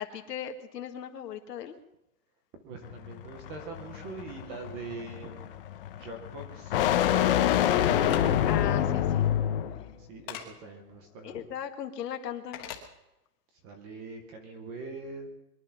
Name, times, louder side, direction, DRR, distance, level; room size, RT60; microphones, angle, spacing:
voice 1, 0.0-1.8 8.5-9.3 11.2-12.7, left 9 dB, 85° left, 6 dB, 2.0 m, -38 dB
voice 2, 2.6-5.7 6.0-6.8 7.1-8.5 10.0-11.4 13.6-15.3, right 3 dB, 15° right, 5 dB, 0.7 m, -43 dB
sound 1, 2.8-9.9, left 11 dB, 35° left, 0.9 m, -27 dB
sound 2, 8.0-8.2 10.3-10.5 12.5-12.8, left 11 dB, 20° left, 1.4 m, -39 dB
22.5 x 11.0 x 5.7 m, 0.92 s
supercardioid pair, 175°, 47 cm